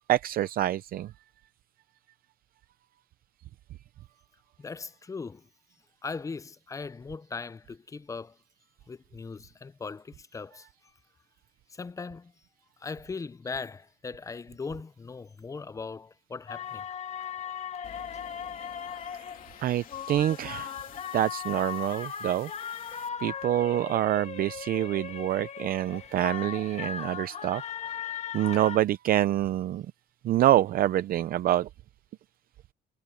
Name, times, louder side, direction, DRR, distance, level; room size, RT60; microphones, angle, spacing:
voice 1, 0.1-1.1 19.6-20.8 21.1-22.5 23.2-27.6 28.3-29.9 30.2-31.7, right 13 dB, 60° right, 0.7 m, -26 dB
voice 2, 4.6-5.4 6.0-8.4 8.9-10.7 11.7-12.3 12.8-16.9, left 4 dB, 20° left, 0.6 m, -39 dB
sound 1, 16.5-28.8, left 8 dB, 40° left, 1.6 m, -38 dB
sound 2, 17.8-23.1, left 10 dB, 55° left, 2.6 m, -52 dB
cardioid pair, 110°, 17 cm